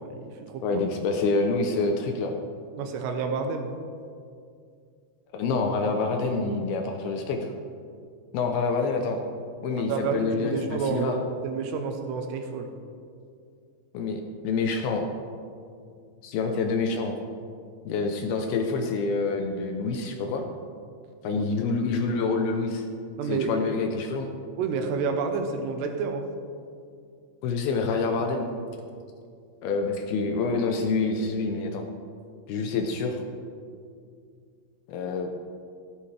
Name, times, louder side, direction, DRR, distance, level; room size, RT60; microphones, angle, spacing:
voice 1, 0.0-0.8 2.8-3.7 9.8-12.7 21.4-21.5 23.2-23.5 24.6-26.3, right 5 dB, 80° right, 5 dB, 2.9 m, -29 dB
voice 2, 0.6-2.3 5.3-7.5 8.3-9.2 9.6-11.2 13.9-15.1 16.2-17.2 17.9-20.5 21.2-22.9 23.3-24.3 27.4-28.5 29.6-31.8 32.5-33.2 34.9-35.3, left 4 dB, 75° left, 3 dB, 2.4 m, -27 dB
14.5 x 12.0 x 3.3 m, 2.3 s
omnidirectional pair, 4.9 m